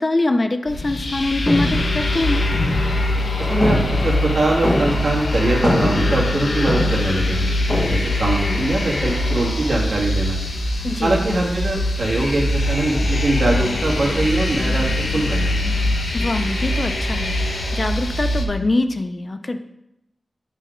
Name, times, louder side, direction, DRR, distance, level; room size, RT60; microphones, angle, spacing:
voice 1, 0.0-2.4 10.8-11.2 16.1-17.4 17.7-19.6, left 2 dB, 35° left, 8 dB, 0.5 m, -23 dB
sound 1, 0.7-18.4, left 1 dB, 70° left, 0.9 m, -22 dB
sound 2, 0.8-1.1 1.5-3.2 3.6-5.2 5.5-7.2 7.7-8.0, left 1 dB, 15° left, 1.3 m, -23 dB
voice 2, 3.4-7.5 7.9-10.4 11.0-14.9 15.1-15.5, right 1 dB, 60° right, -3 dB, 1.7 m, -22 dB
7.6 x 4.0 x 5.0 m, 0.85 s
wide cardioid pair, 110°, 0 cm